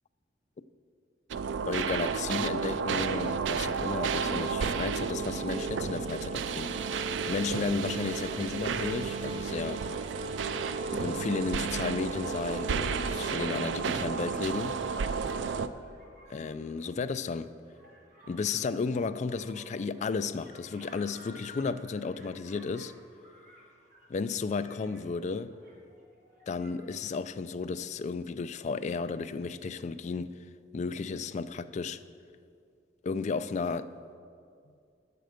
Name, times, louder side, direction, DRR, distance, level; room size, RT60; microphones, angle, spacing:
sound 1, 1.3-15.7, right 6 dB, 90° right, 0.4 m, -32 dB
voice 1, 1.7-6.7 7.0-9.8 10.9-14.8 16.3-17.5 18.3-22.9 24.1-25.6 26.5-30.3 30.7-32.0 33.0-33.9, left 4 dB, 40° left, 0.3 m, -33 dB
sound 2, 3.3-13.7, left 1 dB, 35° right, 0.5 m, -43 dB
sound 3, 7.0-26.9, equal, 50° right, 1.9 m, -56 dB
10.5 x 7.8 x 5.0 m
head